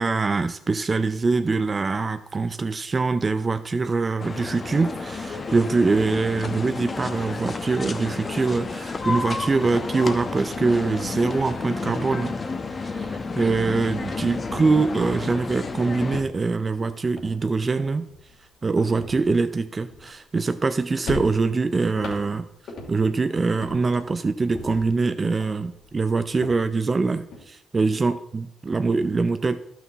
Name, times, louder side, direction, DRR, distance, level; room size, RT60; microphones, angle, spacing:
voice 1, 0.0-12.3 12.7-18.0 18.6-22.4 22.9-29.6, right 4 dB, 30° right, 10 dB, 0.5 m, -24 dB
sound 1, 4.2-16.2, left 3 dB, 35° left, 0.9 m, -31 dB
sound 2, 10.8-13.6 14.0-14.8 15.1-15.5 16.0-20.7 21.0-23.2 23.6-25.0 25.4-27.4, left 3 dB, 70° left, 2.8 m, -41 dB
12.0 x 6.1 x 4.1 m, 0.76 s
cardioid pair, 90°, 0 cm